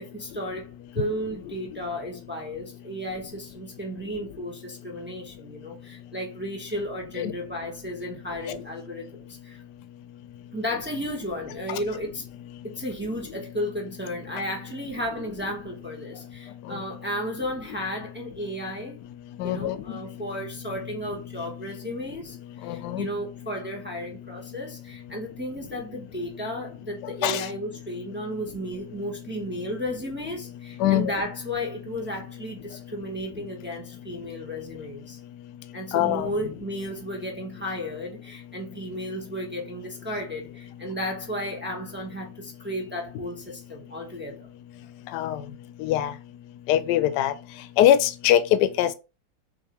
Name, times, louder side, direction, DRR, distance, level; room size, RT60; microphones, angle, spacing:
voice 1, 0.0-9.6 10.5-12.2 12.6-19.0 19.4-22.4 22.6-35.2 35.7-44.5, equal, 15° right, 0.3 m, -34 dB
voice 2, 19.4-19.8 22.7-23.1 27.2-27.4 30.8-31.1 35.9-36.3 45.1-45.4 45.8-46.1 46.7-47.3 47.8-48.9, left 12 dB, 75° left, 1.1 m, -22 dB
6.4 x 2.8 x 2.9 m
omnidirectional pair, 2.0 m